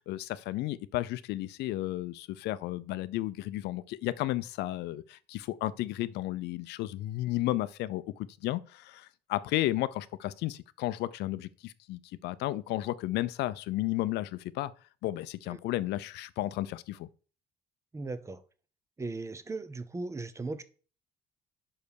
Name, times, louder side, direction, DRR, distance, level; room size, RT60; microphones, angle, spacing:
voice 1, 0.1-14.7 15.0-17.1, left 16 dB, 80° left, 0.6 m, -33 dB
voice 2, 17.9-18.4 19.0-20.6, right 3 dB, 15° right, 0.7 m, -37 dB
5.7 x 5.3 x 6.4 m
cardioid pair, 110°, 17 cm